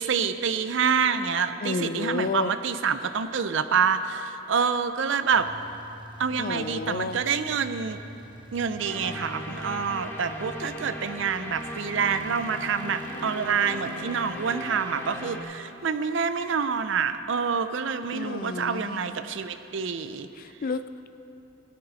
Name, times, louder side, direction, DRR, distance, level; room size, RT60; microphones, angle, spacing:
voice 1, 0.0-5.5 6.2-8.0 8.5-20.3, right 6 dB, 60° right, 10 dB, 0.5 m, -27 dB
voice 2, 1.6-2.5 6.4-7.2 18.1-19.2 20.3-21.1, left 4 dB, 40° left, 12 dB, 0.3 m, -31 dB
sound 1, 5.3-16.5, right 1 dB, 25° right, 0.8 m, -47 dB
sound 2, 8.8-15.4, equal, 10° left, 1.0 m, -38 dB
16.5 x 9.4 x 4.1 m, 3.0 s
head